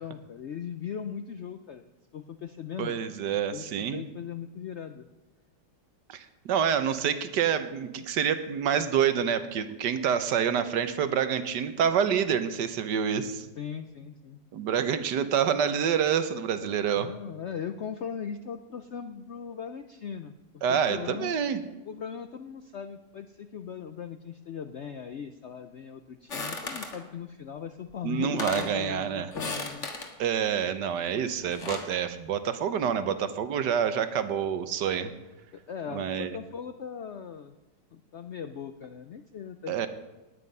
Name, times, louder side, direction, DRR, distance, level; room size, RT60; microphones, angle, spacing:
voice 1, 0.0-1.9 2.1-3.0 3.5-5.1 13.6-14.4 17.0-21.4 21.9-29.9 31.0-31.1 35.7-37.5 37.9-39.9, left 7 dB, 70° left, 9 dB, 0.6 m, -39 dB
voice 2, 2.8-4.0 6.1-13.5 14.5-17.1 20.6-21.6 28.0-29.3 30.2-35.1 35.9-36.4 39.7-39.9, right 8 dB, 75° right, 11 dB, 1.5 m, -27 dB
sound 1, 26.3-27.0 27.9-28.0 28.2-28.8 29.3-30.1 31.3-31.9, left 3 dB, 45° left, 1.9 m, -35 dB
18.5 x 9.6 x 5.4 m, 1.1 s
omnidirectional pair, 1.9 m